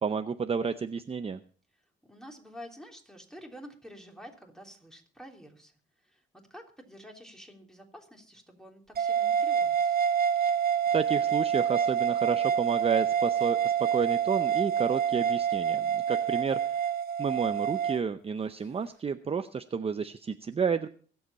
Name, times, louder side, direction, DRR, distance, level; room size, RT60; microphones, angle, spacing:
voice 1, 0.0-1.4 10.9-16.8 17.2-20.9, right 6 dB, 30° right, 9 dB, 0.7 m, -31 dB
voice 2, 2.0-5.7 6.0-6.2 6.5-10.0, equal, 5° left, 2 dB, 3.3 m, -49 dB
sound 1, 9.0-18.0, right 8 dB, 50° right, 1.1 m, -27 dB
23.0 x 7.9 x 4.2 m, 0.43 s
cardioid pair, 90°, 20 cm